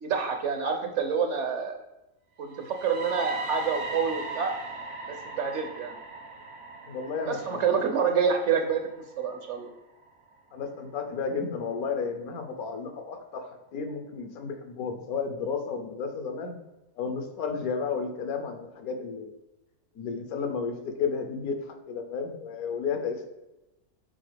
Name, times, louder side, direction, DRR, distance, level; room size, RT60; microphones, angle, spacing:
voice 1, 0.0-1.8 2.4-4.5 5.1-5.9 7.3-8.8 9.2-9.7, right 6 dB, 60° right, 5 dB, 0.8 m, -27 dB
sound 1, 2.5-10.4, right 3 dB, 80° right, 1.5 m, -39 dB
voice 2, 6.9-7.9 10.5-16.6 17.0-19.4 19.9-23.3, left 5 dB, 75° left, 6 dB, 1.2 m, -33 dB
7.7 x 4.0 x 3.4 m, 0.97 s
omnidirectional pair, 1.6 m